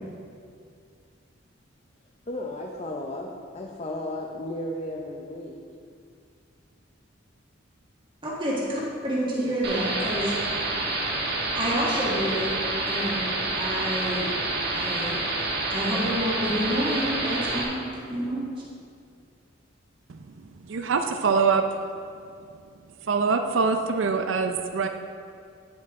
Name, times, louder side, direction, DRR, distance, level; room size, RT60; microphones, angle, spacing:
voice 1, 2.3-5.6 9.4-9.6, left 1 dB, 35° left, 0 dB, 0.6 m, -34 dB
voice 2, 8.2-10.3 11.5-12.6 12.9-14.3 14.7-15.2 15.7-18.4, equal, 25° right, -5 dB, 1.6 m, -28 dB
sound 1, 9.6-17.6, right 2 dB, 55° right, 1.4 m, -28 dB
voice 3, 20.1-21.6 23.0-24.9, right 5 dB, 70° right, 6 dB, 0.5 m, -24 dB
9.7 x 8.6 x 3.6 m, 2.3 s
head